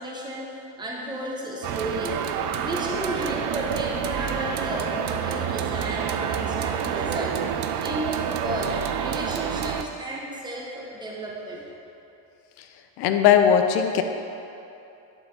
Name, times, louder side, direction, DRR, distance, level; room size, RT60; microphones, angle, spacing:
voice 1, 0.0-2.3 2.6-11.6, right 1 dB, 10° right, -4 dB, 1.2 m, -33 dB
sound 1, 1.6-9.8, right 8 dB, 50° right, 0.5 m, -28 dB
voice 2, 13.0-14.0, left 8 dB, 55° left, 6 dB, 0.7 m, -19 dB
11.0 x 4.5 x 3.9 m, 2.8 s
supercardioid pair, 100°, 48 cm